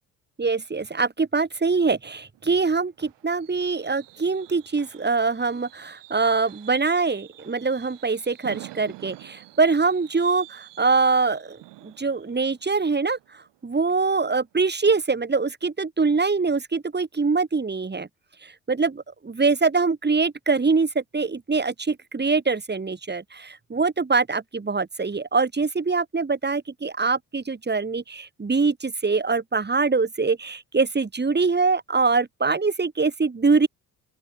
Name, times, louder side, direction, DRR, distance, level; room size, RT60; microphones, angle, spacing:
voice 1, 0.4-18.1 18.4-33.7, right 4 dB, 25° right, 2.5 m, -24 dB
Fireworks, 2.3-14.0 14.4-14.7 15.0-15.1, right 18 dB, 75° right, 6.4 m, -48 dB
open air
hypercardioid pair, 55°, 43 cm